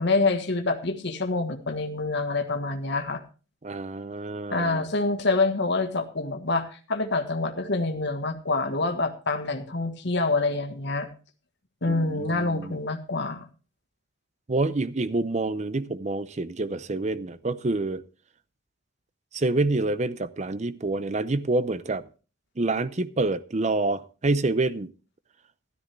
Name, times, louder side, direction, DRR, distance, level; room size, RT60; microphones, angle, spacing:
voice 1, 0.0-3.2 4.5-11.1 11.8-13.5, left 3 dB, 55° left, 1.5 m, -26 dB
voice 2, 3.6-4.8 11.9-12.8 14.5-18.0 19.3-22.0 22.6-24.9, right 2 dB, 35° right, 0.6 m, -27 dB
13.0 x 12.5 x 3.4 m
head